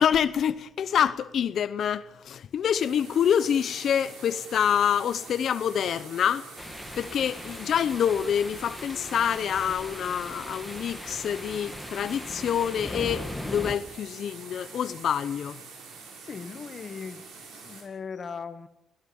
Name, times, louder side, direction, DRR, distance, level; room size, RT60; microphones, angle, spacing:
voice 1, 0.0-6.5 7.0-15.6, left 8 dB, 65° left, 0.9 m, -26 dB
sound 1, 2.8-17.8, right 4 dB, 80° right, 7.0 m, -46 dB
sound 2, 6.6-13.7, left 1 dB, 5° left, 2.5 m, -39 dB
voice 2, 16.2-18.7, left 5 dB, 40° left, 1.7 m, -39 dB
30.0 x 17.0 x 7.2 m
cardioid pair, 90°, 0 cm